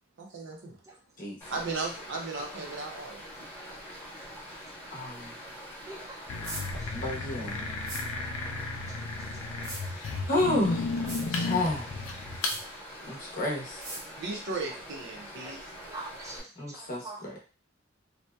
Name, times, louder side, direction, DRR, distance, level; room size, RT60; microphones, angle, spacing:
voice 1, 0.2-0.8 1.5-3.2 14.2-16.0, right 3 dB, 60° right, 1 dB, 0.6 m, -36 dB
Stream, 1.4-16.4, equal, 10° left, 1.0 m, -45 dB
voice 2, 4.9-5.3 6.9-7.7 10.3-10.8 11.3-11.9 13.0-13.8 16.6-17.4, left 1 dB, 40° left, -2 dB, 0.7 m, -30 dB
voice 3, 5.9-6.3 6.8-6.9 15.4-15.5 15.9-17.4, right 2 dB, 15° right, -1 dB, 0.6 m, -44 dB
sound 1, 6.3-12.6, left 3 dB, 85° left, 0.4 m, -34 dB
sound 2, 6.4-6.6 7.9-8.0 9.6-9.8 11.1-11.2 12.4-12.6 13.8-14.0, right 2 dB, 85° right, 1.0 m, -38 dB
2.7 x 2.1 x 2.2 m, 0.36 s
head